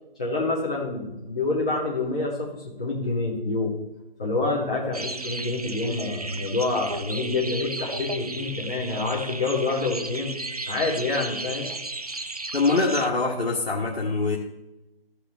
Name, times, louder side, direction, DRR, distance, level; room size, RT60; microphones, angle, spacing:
voice 1, 0.2-3.7 4.2-10.3 10.7-11.7, left 3 dB, 5° left, -9 dB, 0.9 m, -27 dB
sound 1, 4.9-13.1, right 2 dB, 40° right, 0.5 m, -34 dB
voice 2, 12.5-14.4, left 3 dB, 75° left, -3 dB, 1.6 m, -23 dB
15.0 x 5.8 x 3.5 m, 0.96 s
figure-of-eight pair, 170°, 30 cm